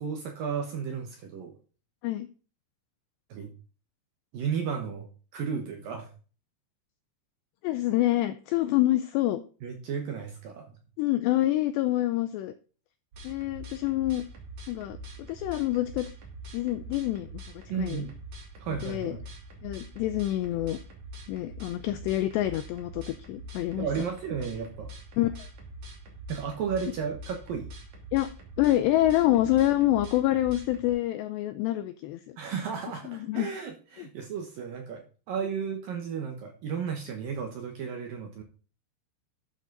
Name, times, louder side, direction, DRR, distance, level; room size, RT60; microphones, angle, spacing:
voice 1, 0.0-1.6 3.3-3.5 4.3-5.1 5.3-6.1 9.6-10.8 17.7-18.2 18.6-19.2 23.8-24.9 26.3-27.7 32.4-38.4, right 6 dB, 70° right, 3 dB, 2.3 m, -34 dB
voice 2, 7.6-9.4 11.0-12.5 13.2-14.2 14.7-15.0 15.3-16.1 16.5-17.3 17.8-18.0 18.8-19.2 19.6-20.8 21.3-23.9 25.2-25.5 28.1-28.3 28.6-32.4 33.1-33.5, left 15 dB, 90° left, 10 dB, 2.4 m, -26 dB
sound 1, 13.1-30.9, right 1 dB, 45° right, 2.9 m, -44 dB
13.0 x 7.7 x 4.0 m, 0.37 s
omnidirectional pair, 5.6 m